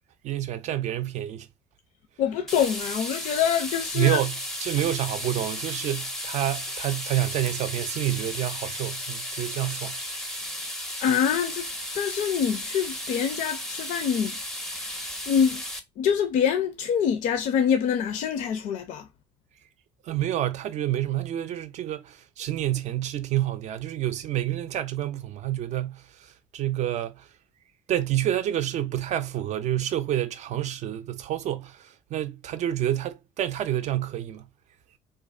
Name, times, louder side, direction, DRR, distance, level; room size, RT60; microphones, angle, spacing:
voice 1, 0.2-1.5 3.9-4.3 4.6-10.0 20.1-26.0 26.5-27.2 27.9-34.5, right 12 dB, 60° right, 0.4 m, -28 dB
voice 2, 2.2-4.2 10.4-10.5 11.0-11.7 11.9-14.4 14.7-15.0 15.3-15.6 16.0-19.1, left 8 dB, 70° left, 0.4 m, -25 dB
sound 1, 2.5-15.8, left 1 dB, 5° left, 0.5 m, -34 dB
2.4 x 2.1 x 2.4 m
cardioid pair, 90°, 14 cm